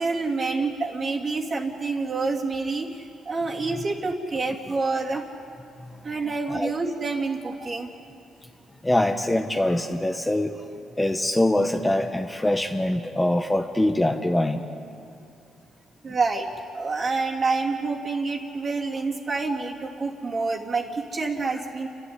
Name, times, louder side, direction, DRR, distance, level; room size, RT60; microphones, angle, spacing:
voice 1, 0.0-2.9 3.2-5.2 6.0-7.9 16.0-21.9, right 3 dB, 40° right, 0 dB, 3.0 m, -27 dB
voice 2, 8.8-10.6 11.0-14.6, left 1 dB, 10° left, 4 dB, 1.2 m, -23 dB
30.0 x 12.5 x 9.7 m, 2.6 s
cardioid pair, 90°, 0 cm